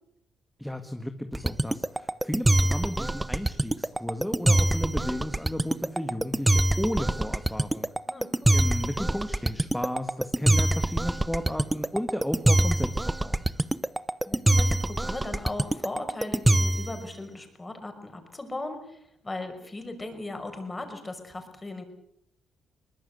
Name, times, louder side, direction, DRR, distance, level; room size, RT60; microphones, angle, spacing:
voice 1, 0.6-7.9 8.5-13.4, left 1 dB, 5° left, 6 dB, 1.9 m, -33 dB
sound 1, 1.3-17.0, right 1 dB, 10° right, 0.8 m, -24 dB
voice 2, 8.1-8.7 14.3-21.8, left 2 dB, 20° left, 6 dB, 5.9 m, -38 dB
23.0 x 20.5 x 8.1 m, 0.76 s
cardioid pair, 90°, 0 cm